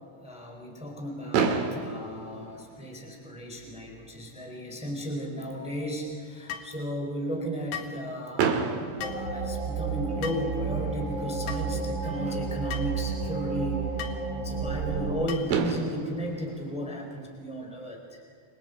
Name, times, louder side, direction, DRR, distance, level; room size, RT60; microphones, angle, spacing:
voice 1, 0.1-8.6 9.0-18.2, equal, ahead, 0 dB, 3.3 m, -35 dB
Fireworks, 1.3-3.4 4.2-4.3 4.5-4.7 5.0-5.1 8.4-10.2 11.9-12.0 15.0-15.1 15.5-17.8, right 5 dB, 85° right, 4.4 m, -30 dB
sound 1, 6.5-6.7 7.7-8.0 9.0-9.3 10.2-10.5 11.5-11.7 12.7-12.9 14.0-14.2 15.3-15.6, left 9 dB, 85° left, 4.2 m, -37 dB
sound 2, 9.0-15.2, right 5 dB, 25° right, 6.9 m, -31 dB
29.5 x 26.5 x 5.3 m, 2.3 s
omnidirectional pair, 5.4 m